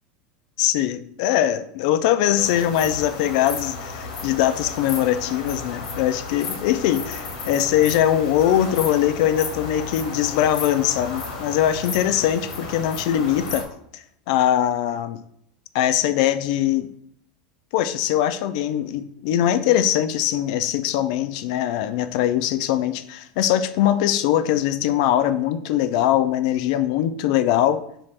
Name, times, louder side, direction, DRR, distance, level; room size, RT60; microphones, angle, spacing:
voice 1, 0.6-13.7 13.9-15.2 15.7-16.9 17.7-27.8, left 11 dB, 60° left, 12 dB, 0.4 m, -21 dB
sound 1, 2.4-13.6, left 4 dB, 85° left, 1.1 m, -33 dB
5.6 x 2.5 x 3.2 m, 0.70 s
supercardioid pair, 145°, 4 cm